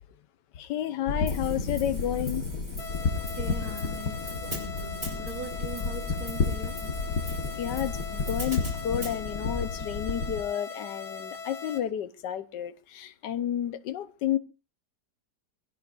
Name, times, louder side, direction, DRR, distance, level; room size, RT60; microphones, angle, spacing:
voice 1, 0.5-2.4 7.5-14.4, left 10 dB, 75° left, 1.5 m, -31 dB
sound 1, 1.1-10.4, left 4 dB, 55° left, 2.0 m, -32 dB
Hi-hat, 1.3-9.2, equal, 15° right, 3.6 m, -44 dB
sound 2, 2.8-11.8, left 4 dB, 40° left, 1.7 m, -40 dB
voice 2, 3.4-4.2 4.4-6.8, right 1 dB, 60° right, 1.9 m, -41 dB
23.5 x 16.5 x 2.5 m
omnidirectional pair, 1.9 m